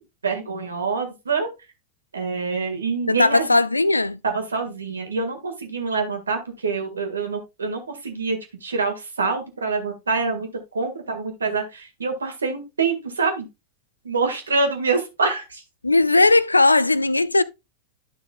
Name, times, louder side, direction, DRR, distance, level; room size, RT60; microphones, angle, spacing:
voice 1, 0.2-1.5 2.1-3.5 4.2-13.5 14.0-15.6, right 4 dB, 75° right, 1.8 m, -26 dB
voice 2, 3.1-4.2 15.8-17.4, left 2 dB, 80° left, 0.4 m, -17 dB
11.5 x 5.9 x 2.3 m
figure-of-eight pair, 90°, 0 cm